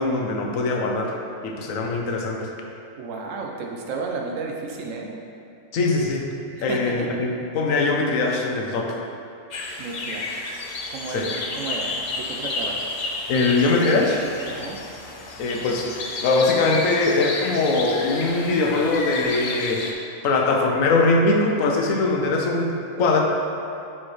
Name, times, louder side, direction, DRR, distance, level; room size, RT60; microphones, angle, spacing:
voice 1, 0.0-2.5 5.7-6.3 6.6-9.1 11.1-11.3 13.3-14.2 15.4-15.9 16.2-20.0 20.2-23.2, left 3 dB, 80° left, 1 dB, 1.1 m, -22 dB
voice 2, 3.0-5.1 6.6-7.2 9.8-10.4 10.9-12.8 14.5-14.8, right 4 dB, 75° right, 0 dB, 1.1 m, -32 dB
sound 1, 9.5-19.9, left 2 dB, 45° left, 0.6 m, -31 dB
8.8 x 4.3 x 3.2 m, 2.7 s
omnidirectional pair, 1.4 m